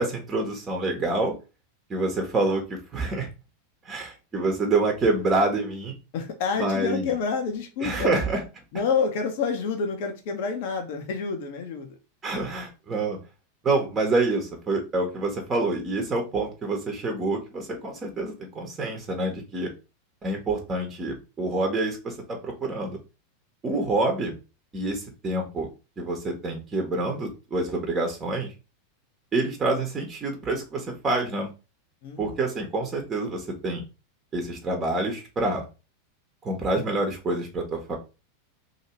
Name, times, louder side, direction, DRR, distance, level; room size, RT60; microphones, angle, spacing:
voice 1, 0.0-1.3 1.9-3.3 3.8-5.9 6.6-7.1 7.8-8.4 12.2-13.2 13.6-19.7 20.2-23.0 23.6-24.4 24.7-25.7 26.0-28.5 29.3-31.5 32.2-33.8 34.3-35.6 36.4-38.0, right 2 dB, 25° right, 3 dB, 1.1 m, -27 dB
voice 2, 6.1-8.1 8.7-11.9 32.0-32.4, left 5 dB, 60° left, 3 dB, 0.8 m, -28 dB
2.9 x 2.8 x 4.3 m, 0.30 s
hypercardioid pair, 95°, 0 cm